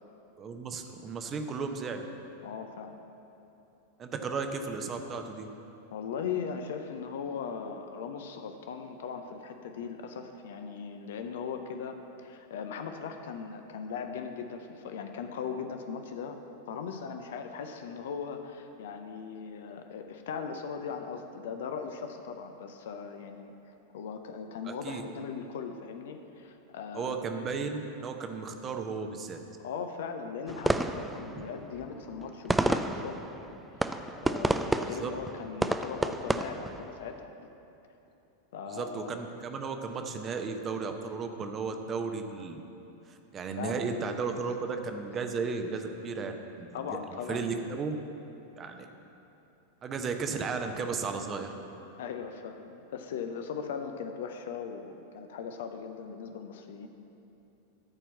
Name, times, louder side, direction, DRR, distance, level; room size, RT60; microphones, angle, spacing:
voice 1, 0.4-2.1 4.0-5.5 24.6-25.0 26.9-29.4 30.8-30.9 31.3-31.4 34.8-35.1 38.7-42.6 43.1-47.0 47.3-48.0 48.6-48.9 49.8-51.5, right 4 dB, 25° right, 5 dB, 0.8 m, -35 dB
voice 2, 2.4-3.0 5.9-16.4 16.7-27.2 29.6-37.3 38.5-39.2 43.6-44.2 46.7-47.6 52.0-56.9, left 6 dB, 55° left, 6 dB, 0.6 m, -39 dB
sound 1, 30.5-37.2, right 2 dB, 5° right, 0.4 m, -31 dB
13.5 x 4.5 x 7.4 m, 2.9 s
figure-of-eight pair, 90°, 0 cm